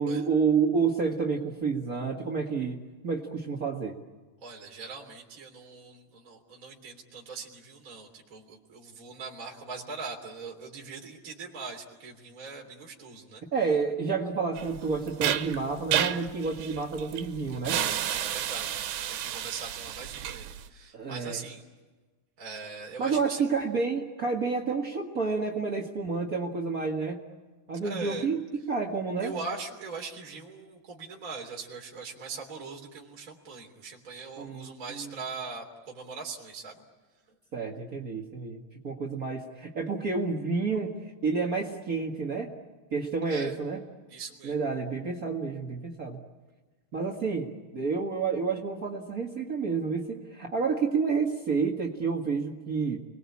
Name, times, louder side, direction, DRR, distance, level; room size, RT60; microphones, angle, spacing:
voice 1, 0.0-4.0 13.5-17.8 20.9-21.4 23.0-27.2 27.7-28.4 28.7-29.4 34.4-35.2 37.5-40.9 41.2-42.5 42.9-43.8 44.4-46.2 46.9-53.0, right 5 dB, 65° right, 0 dB, 0.8 m, -29 dB
voice 2, 4.4-13.4 18.0-21.6 22.4-23.4 27.8-28.3 29.2-36.8 43.2-43.6 44.1-44.5, right 4 dB, 20° right, -1 dB, 3.1 m, -41 dB
sound 1, 14.6-20.7, right 10 dB, 90° right, 3.3 m, -31 dB
30.0 x 21.5 x 8.6 m, 1.3 s
omnidirectional pair, 4.8 m